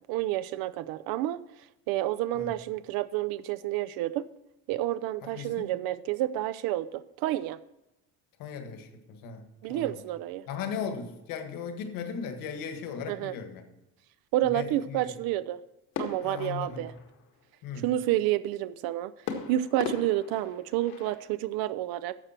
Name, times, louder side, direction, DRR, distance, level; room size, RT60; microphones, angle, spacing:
voice 1, 0.1-1.4 1.9-4.3 4.7-6.9 7.2-7.6 9.6-10.4 13.1-13.4 14.3-15.6 16.0-16.9 17.8-19.1 19.5-22.2, right 14 dB, 80° right, 14 dB, 0.5 m, -29 dB
voice 2, 5.2-5.7 8.4-10.0 10.5-13.7 14.4-15.1 16.2-16.9 17.6-17.8, left 6 dB, 70° left, 7 dB, 1.6 m, -37 dB
sound 1, 15.9-17.5 19.3-21.3, left 6 dB, 85° left, 1.9 m, -39 dB
12.0 x 7.4 x 4.3 m, 0.94 s
cardioid pair, 165°, 36 cm